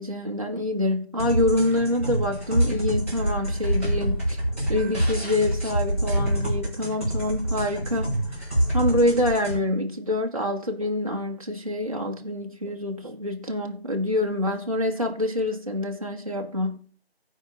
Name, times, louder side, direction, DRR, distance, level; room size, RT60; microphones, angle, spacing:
voice 1, 0.0-4.4 4.7-8.2 8.7-16.8, left 1 dB, 35° right, 0.9 m, -26 dB
sound 1, 1.2-9.6, right 1 dB, 15° left, 1.7 m, -26 dB
14.5 x 4.9 x 4.3 m
figure-of-eight pair, 180°, 32 cm